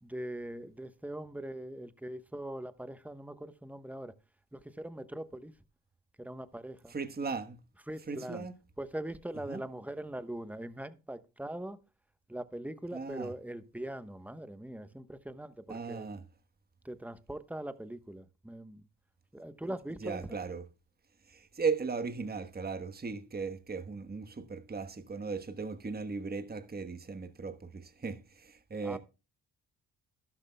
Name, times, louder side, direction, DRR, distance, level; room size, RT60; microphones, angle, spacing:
voice 1, 0.0-4.1 4.5-5.5 6.2-6.9 7.9-8.5 8.8-11.8 12.3-16.1 16.8-18.8 19.3-20.4 28.8-29.0, right 1 dB, 5° right, 1.0 m, -41 dB
voice 2, 6.9-7.6 8.1-8.5 9.5-9.6 12.9-13.3 15.7-16.2 20.0-20.7 21.3-29.0, right 4 dB, 25° right, 1.2 m, -37 dB
12.0 x 12.0 x 2.2 m
cardioid pair, 65°, 39 cm